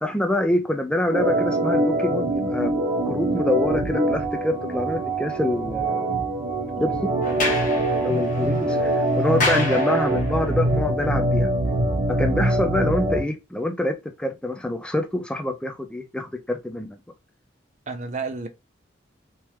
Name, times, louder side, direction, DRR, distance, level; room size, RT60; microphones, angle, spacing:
voice 1, 0.0-6.1 6.8-6.9 8.0-11.5 12.1-17.0, left 1 dB, 5° left, 0.4 m, -26 dB
Organ, 1.1-13.2, right 1 dB, 60° right, 1.3 m, -23 dB
voice 2, 6.7-7.1 17.9-18.5, right 4 dB, 35° right, 0.6 m, -32 dB
Sliding door, 7.2-10.5, left 2 dB, 40° left, 1.0 m, -29 dB
3.5 x 2.9 x 3.0 m
head